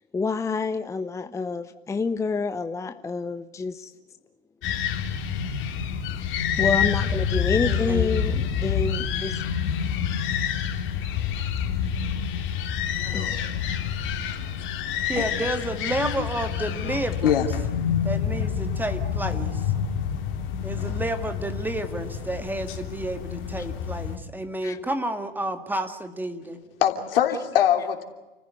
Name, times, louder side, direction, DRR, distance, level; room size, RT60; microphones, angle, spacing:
voice 1, 0.1-3.9 6.6-9.4 11.3-11.9 13.1-13.4 24.6-24.8, left 4 dB, 10° left, 10 dB, 0.7 m, -28 dB
sound 1, 4.6-24.2, left 8 dB, 40° left, 3.3 m, -28 dB
voice 2, 7.6-8.5 15.1-17.4 18.0-19.6 20.6-26.6, right 1 dB, 5° right, 8 dB, 2.0 m, -31 dB
voice 3, 26.8-28.0, left 10 dB, 70° left, 6 dB, 3.2 m, -23 dB
29.5 x 15.0 x 9.6 m, 1.1 s
hypercardioid pair, 105°, 29 cm